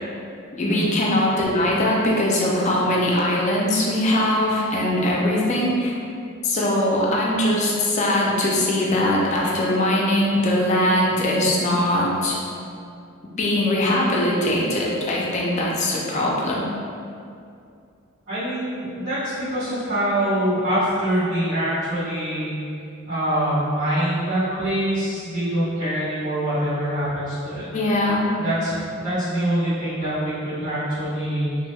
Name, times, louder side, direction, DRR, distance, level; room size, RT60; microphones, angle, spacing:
voice 1, 0.5-5.9 6.4-12.3 13.4-16.6 24.5-24.6 27.7-28.2, left 1 dB, 35° left, -3 dB, 0.4 m, -21 dB
voice 2, 18.3-22.5 23.1-27.7 28.4-31.5, right 1 dB, 75° right, -19 dB, 1.4 m, -24 dB
3.0 x 2.1 x 3.3 m, 2.5 s
head